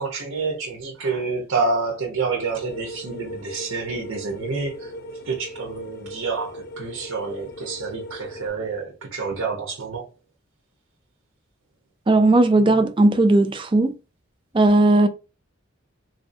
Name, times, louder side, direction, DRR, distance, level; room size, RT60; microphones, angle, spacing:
voice 1, 0.0-4.9 5.2-10.1, right 4 dB, 85° right, 0.9 m, -28 dB
sound 1, 2.5-8.5, equal, 45° left, 0.5 m, -38 dB
voice 2, 12.1-13.9 14.5-15.1, right 2 dB, 25° right, 0.3 m, -16 dB
3.9 x 2.6 x 2.6 m
head